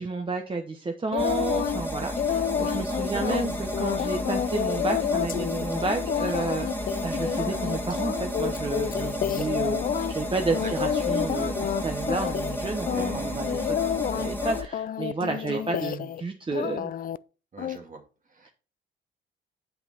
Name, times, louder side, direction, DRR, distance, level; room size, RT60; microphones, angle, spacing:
voice 1, 0.0-9.8 10.1-12.9 13.1-16.9, right 3 dB, 25° right, 4 dB, 1.0 m, -31 dB
sound 1, 1.1-1.8 2.2-10.1 10.5-11.8 12.1-12.6 12.9-16.2 16.5-17.2 17.6-17.8, left 10 dB, 45° left, 0.4 m, -29 dB
sound 2, 1.2-14.6, equal, 10° left, 1.8 m, -32 dB
voice 2, 10.5-10.9 12.9-13.4 15.3-15.6 17.5-18.0 18.3-18.5, right 4 dB, 40° right, 4 dB, 2.1 m, -38 dB
7.8 x 5.7 x 4.3 m, 0.35 s
cardioid pair, 90°, 20 cm